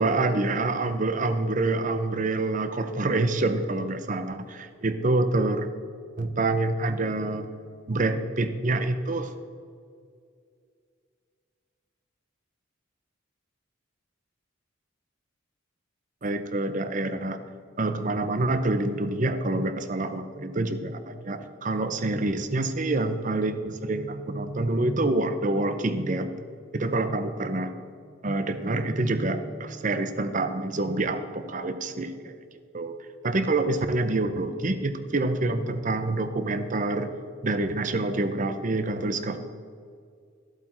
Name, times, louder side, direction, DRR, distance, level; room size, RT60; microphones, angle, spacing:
voice 1, 0.0-5.7 6.2-7.5 7.9-9.3 16.2-17.4 17.8-26.3 26.7-27.7 28.2-32.3 32.7-33.0 33.2-37.1 37.4-39.4, right 2 dB, 40° right, 10 dB, 0.7 m, -27 dB
14.0 x 8.1 x 4.4 m, 2.3 s
head